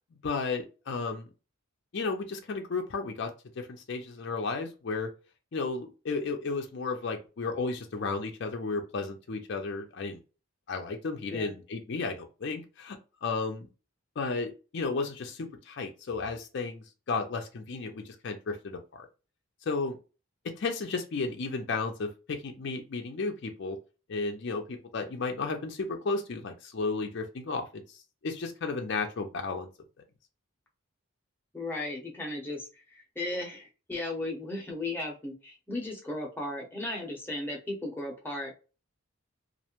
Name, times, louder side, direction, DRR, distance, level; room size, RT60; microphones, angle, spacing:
voice 1, 0.2-1.3 1.9-5.1 5.5-10.2 10.7-13.7 14.2-19.1 19.7-20.0 20.4-23.8 24.1-27.8 28.2-29.7, left 4 dB, 55° left, 4 dB, 0.4 m, -33 dB
voice 2, 31.5-38.5, left 2 dB, 10° left, -1 dB, 0.7 m, -36 dB
2.4 x 2.1 x 2.9 m, 0.32 s
head